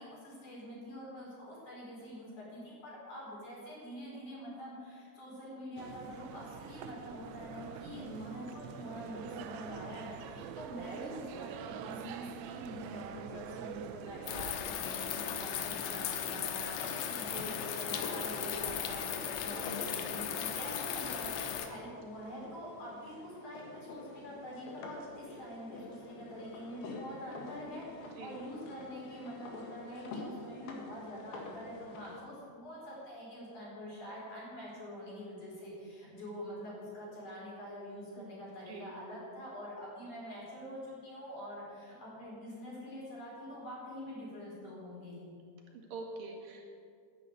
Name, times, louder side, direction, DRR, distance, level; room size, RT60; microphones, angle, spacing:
voice 1, 0.0-45.3, equal, 45° left, -6 dB, 5.9 m, -45 dB
Bcnt through adrea doria, 5.8-14.6, right 8 dB, 85° right, 2.9 m, -45 dB
voice 2, 7.9-8.3 17.1-17.6 28.0-28.4 38.2-38.3 38.7-38.9 45.7-46.7, right 3 dB, 60° right, 1 dB, 3.2 m, -46 dB
sound 1, 14.3-21.7, left 8 dB, 85° left, 3.2 m, -37 dB
sound 2, 16.5-32.1, left 3 dB, 65° left, 3.4 m, -48 dB
11.0 x 9.8 x 9.2 m, 2.4 s
omnidirectional pair, 5.0 m